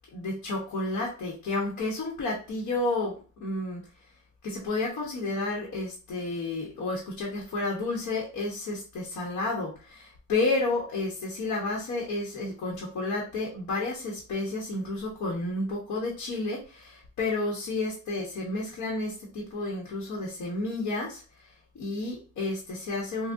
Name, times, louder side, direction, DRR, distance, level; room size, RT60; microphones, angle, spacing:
voice 1, 0.1-3.8 4.4-21.2 21.7-23.3, left 2 dB, 75° left, -3 dB, 1.1 m, -31 dB
3.6 x 2.3 x 2.6 m, 0.34 s
cardioid pair, 90°, 30 cm